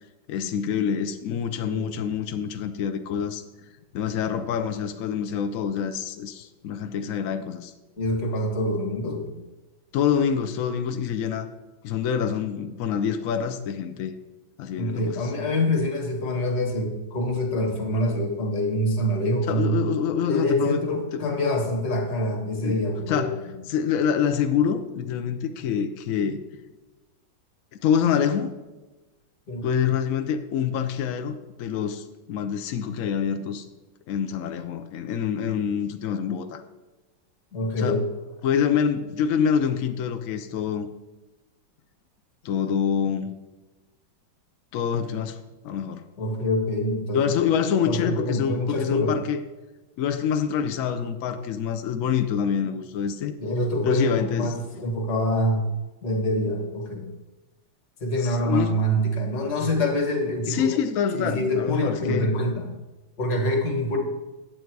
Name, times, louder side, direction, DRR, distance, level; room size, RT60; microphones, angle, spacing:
voice 1, 0.3-3.4 3.9-7.7 9.9-11.5 11.8-14.1 14.6-15.2 19.5-20.8 21.1-21.2 22.6-22.8 23.1-23.4 23.7-26.4 27.8-28.5 29.6-33.7 34.1-36.6 37.8-38.0 38.4-40.9 42.4-43.3 44.7-45.4 45.6-46.0 47.1-49.4 50.0-53.3 53.8-54.6 58.2-58.7 60.5-62.3, left 8 dB, 80° left, 8 dB, 0.7 m, -26 dB
voice 2, 8.0-9.3 14.7-19.8 20.3-23.5 29.5-29.7 37.5-38.0 46.2-47.3 47.9-49.2 53.4-55.7 56.0-57.1 58.0-60.8 61.1-62.7 63.2-64.0, left 1 dB, 55° left, 2 dB, 2.0 m, -25 dB
9.5 x 7.7 x 4.6 m, 1.1 s
omnidirectional pair, 2.2 m